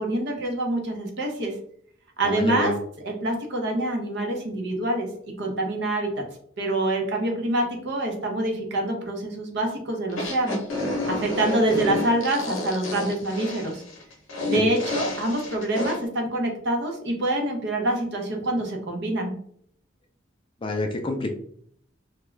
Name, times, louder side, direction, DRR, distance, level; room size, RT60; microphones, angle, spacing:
voice 1, 0.0-1.5 2.2-2.7 3.0-6.1 6.6-10.6 11.1-13.8 14.5-19.3, right 1 dB, 60° right, 2 dB, 0.7 m, -26 dB
voice 2, 2.2-2.8 14.5-14.7 20.6-21.3, left 2 dB, 25° left, 4 dB, 0.3 m, -27 dB
sound 1, 10.1-16.0, left 2 dB, 80° left, 0.7 m, -30 dB
2.3 x 2.2 x 3.0 m, 0.63 s
head